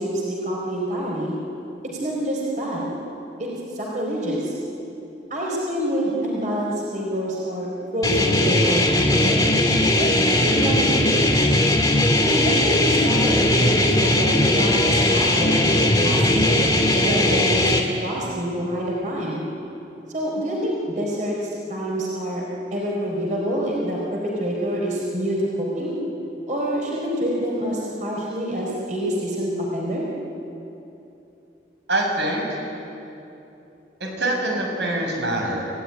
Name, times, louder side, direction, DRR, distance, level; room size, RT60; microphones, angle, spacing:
voice 1, 0.0-1.3 2.0-2.9 3.4-3.5 3.8-4.5 5.3-7.7 7.9-8.8 9.2-9.4 9.9-10.1 10.4-11.5 12.2-16.7 16.9-19.4 20.1-22.4 22.7-25.4 25.7-25.9 26.5-30.0, equal, 45° right, -3 dB, 4.4 m, -26 dB
sound 1, 8.0-17.8, left 1 dB, 20° left, 2.4 m, -19 dB
voice 2, 31.9-32.4 34.0-35.7, right 1 dB, 80° right, 0 dB, 7.0 m, -24 dB
28.5 x 16.5 x 9.9 m, 2.9 s
head